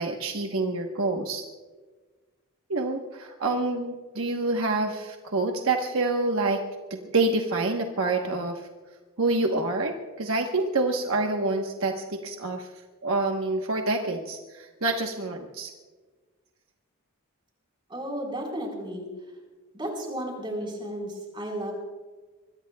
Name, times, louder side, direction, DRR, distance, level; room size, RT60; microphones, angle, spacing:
voice 1, 0.0-1.4 2.7-6.6 6.9-8.6 9.2-12.7 13.0-15.7, right 2 dB, 70° right, 2 dB, 1.1 m, -27 dB
voice 2, 17.9-19.1 19.7-21.8, right 1 dB, 20° right, 0 dB, 4.2 m, -33 dB
25.0 x 22.0 x 2.3 m, 1.3 s
head